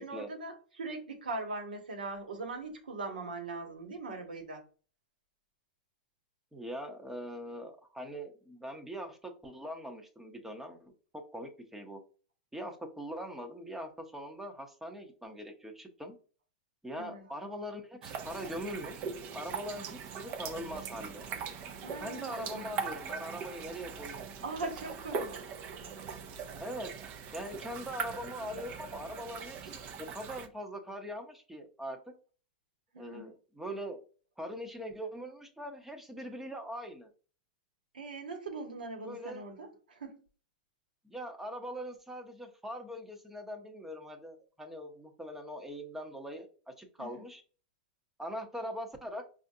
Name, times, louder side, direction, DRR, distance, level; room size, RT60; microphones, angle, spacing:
voice 1, 0.0-4.6 17.0-17.3 21.8-22.8 24.4-25.4 32.9-33.3 37.9-40.2 47.0-47.2, right 3 dB, 85° right, 3 dB, 1.2 m, -41 dB
voice 2, 6.5-12.0 12.5-16.2 16.8-19.1 19.3-21.3 22.0-24.3 26.6-27.0 27.3-32.0 33.0-34.0 34.4-37.1 39.0-39.5 41.0-47.4 48.2-49.2, equal, 5° right, 4 dB, 0.8 m, -42 dB
sound 1, 18.0-30.5, right 6 dB, 40° right, 0.6 m, -41 dB
4.9 x 2.5 x 2.7 m, 0.38 s
hypercardioid pair, 115°, 5 cm